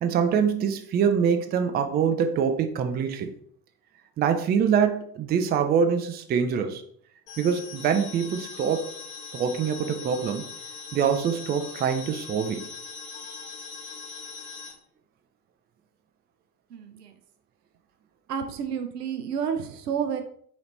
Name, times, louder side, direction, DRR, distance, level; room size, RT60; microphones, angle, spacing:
voice 1, 0.0-3.3 4.2-6.8 7.4-8.9 9.3-10.5 10.9-12.7, right 7 dB, 20° right, 7 dB, 0.4 m, -24 dB
sound 1, 7.3-14.7, left 5 dB, 60° left, 1.3 m, -41 dB
voice 2, 16.7-17.1 18.3-20.2, right 7 dB, 80° right, 7 dB, 0.6 m, -30 dB
4.1 x 3.9 x 3.2 m, 0.62 s
figure-of-eight pair, 60°, 47 cm